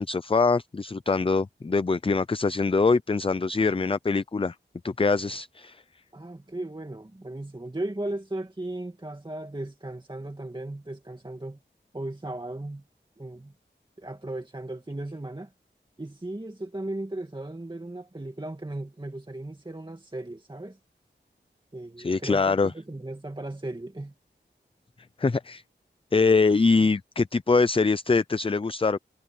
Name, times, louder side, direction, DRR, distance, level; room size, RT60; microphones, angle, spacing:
voice 1, 0.0-4.6 4.8-5.8 22.0-22.7 25.2-25.6 26.1-29.0, left 4 dB, 30° left, 0.5 m, -23 dB
voice 2, 6.1-11.6 11.9-12.8 13.2-13.5 14.0-15.5 16.0-20.8 21.7-24.1, right 1 dB, 25° right, 2.0 m, -36 dB
wide cardioid pair, 70°, 19 cm